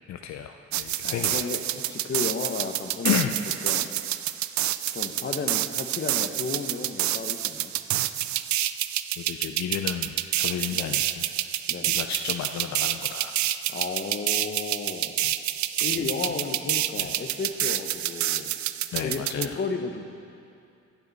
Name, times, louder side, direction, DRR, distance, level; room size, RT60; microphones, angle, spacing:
voice 1, 0.1-1.5 3.0-3.3 9.2-11.3 11.9-13.3 15.2-15.3 15.9-16.1 16.9-17.2 18.9-19.6, left 9 dB, 65° left, 5 dB, 0.6 m, -32 dB
sound 1, 0.7-19.5, right 13 dB, 70° right, 0.5 m, -28 dB
voice 2, 1.0-3.3 3.6-3.9 4.9-7.7 10.7-11.0 11.7-12.0 13.7-15.1 15.8-18.5 19.0-20.0, left 4 dB, 35° left, 5 dB, 1.1 m, -33 dB
15.5 x 11.0 x 4.1 m, 2.5 s
cardioid pair, 90°, 30 cm